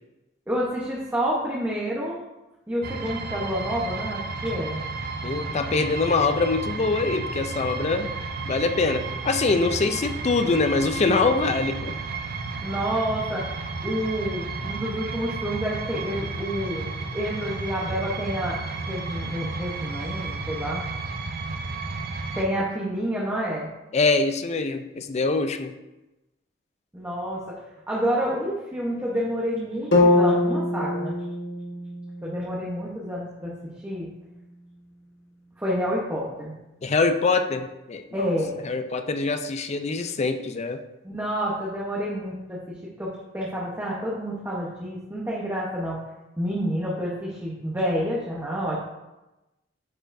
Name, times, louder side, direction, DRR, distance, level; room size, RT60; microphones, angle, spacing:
voice 1, 0.5-2.2 2.7-4.8 12.6-13.5 13.8-16.9 17.1-20.8 22.4-23.7 26.9-27.6 27.9-31.2 32.2-33.5 33.8-34.1 35.6-36.5 38.1-38.5 41.0-46.0 46.4-48.8, equal, 10° right, -5 dB, 0.9 m, -29 dB
sound 1, 2.8-22.5, right 3 dB, 55° right, 0.5 m, -32 dB
voice 2, 5.2-8.1 8.5-12.0 23.9-25.7 36.8-38.3 38.6-40.8, left 3 dB, 35° left, 8 dB, 0.4 m, -24 dB
sound 2, 29.9-34.0, left 2 dB, 80° left, 1.2 m, -24 dB
9.8 x 4.4 x 2.6 m, 1.0 s
head